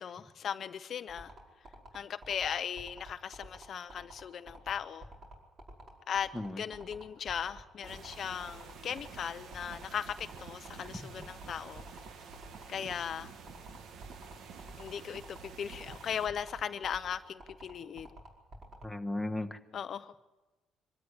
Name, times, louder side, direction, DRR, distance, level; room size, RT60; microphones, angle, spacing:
voice 1, 0.0-1.3 1.9-5.1 6.1-6.3 6.6-11.8 12.7-13.3 14.8-18.1 19.7-20.1, left 8 dB, 50° left, 11 dB, 0.6 m, -38 dB
sound 1, 1.1-18.8, right 1 dB, 40° right, 5.2 m, -49 dB
sound 2, 7.8-16.3, right 6 dB, 65° right, 1.5 m, -50 dB
voice 2, 18.8-19.6, left 1 dB, ahead, 7 dB, 1.3 m, -35 dB
24.5 x 13.0 x 9.8 m, 1.1 s
cardioid pair, 140°, 0 cm